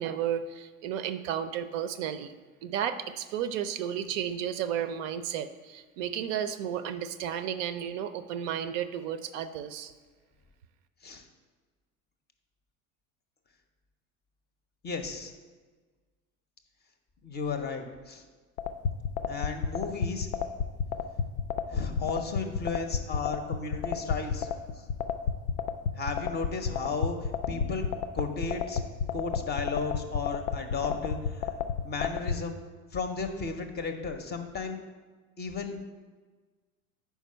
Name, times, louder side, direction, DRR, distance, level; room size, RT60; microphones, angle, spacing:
voice 1, 0.0-2.3 2.6-9.9, right 9 dB, 60° right, 11 dB, 0.5 m, -33 dB
voice 2, 14.8-15.3 17.2-18.2 19.3-20.3 21.7-24.5 24.7-24.9 26.0-27.8 28.1-28.8 29.1-31.5 31.8-32.6 32.9-34.8 35.4-35.8, left 4 dB, 25° left, 6 dB, 0.6 m, -34 dB
sound 1, 18.6-32.4, left 7 dB, 75° left, 0.5 m, -30 dB
4.6 x 4.6 x 5.5 m, 1.4 s
hypercardioid pair, 85°, 43 cm